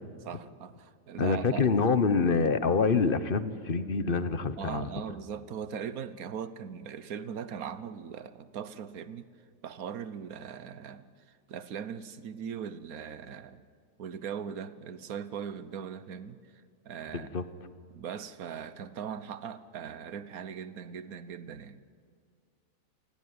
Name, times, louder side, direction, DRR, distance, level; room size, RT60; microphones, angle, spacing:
voice 1, 0.2-1.9 4.6-9.3 9.6-11.0 11.5-13.6 14.0-16.4 16.8-17.3 17.9-21.8, right 7 dB, 85° right, 14 dB, 1.4 m, -39 dB
voice 2, 1.2-4.9 17.1-17.4, left 5 dB, 45° left, 12 dB, 1.1 m, -26 dB
27.5 x 18.0 x 9.5 m, 2.1 s
omnidirectional pair, 1.5 m